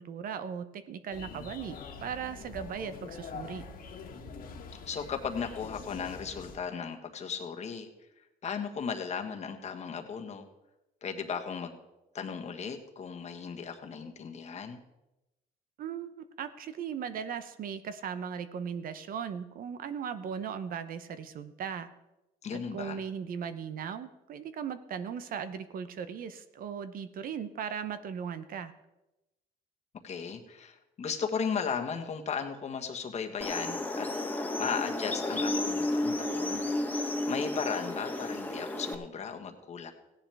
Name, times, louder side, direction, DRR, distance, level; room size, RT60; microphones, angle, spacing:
voice 1, 0.0-3.6 15.8-21.9 22.5-28.7, right 7 dB, 55° right, 12 dB, 0.8 m, -38 dB
sound 1, 1.1-6.6, left 5 dB, 60° left, 1.8 m, -45 dB
voice 2, 4.9-7.9 8.4-10.5 11.0-11.8 12.1-14.8 22.4-23.0 30.0-36.7 37.3-39.9, left 6 dB, 40° left, 4 dB, 1.4 m, -36 dB
sound 2, 33.4-39.0, left 1 dB, 10° left, 1.2 m, -32 dB
16.5 x 10.5 x 3.5 m, 0.97 s
cardioid pair, 110°, 17 cm